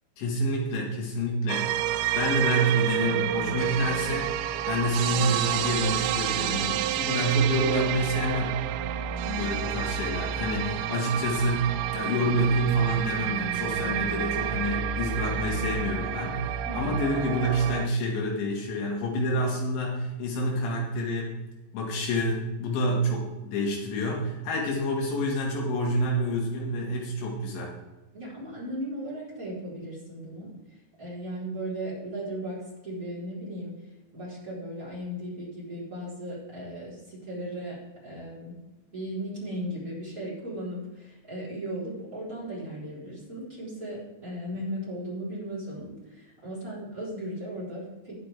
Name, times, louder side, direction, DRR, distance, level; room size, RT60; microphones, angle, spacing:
voice 1, 0.2-1.7 2.2-4.4 4.7-8.6 9.1-21.3 21.7-27.8, equal, 85° left, -1 dB, 4.5 m, -28 dB
sound 1, 1.5-17.9, right 10 dB, 85° right, 2.9 m, -29 dB
voice 2, 16.6-17.0 28.1-33.7 34.1-37.8 38.0-38.5 38.9-48.2, right 1 dB, 20° right, -8 dB, 4.8 m, -36 dB
19.5 x 6.7 x 3.7 m, 1.1 s
omnidirectional pair, 5.2 m